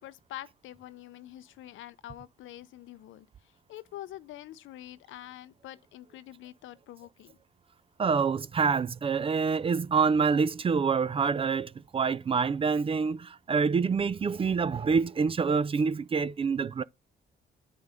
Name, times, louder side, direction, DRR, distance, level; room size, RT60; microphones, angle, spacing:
voice 1, 0.0-7.4, left 13 dB, 80° left, 0.6 m, -46 dB
voice 2, 8.0-16.8, right 5 dB, 30° right, 0.3 m, -26 dB
9.4 x 5.2 x 3.5 m
cardioid pair, 90°, 20 cm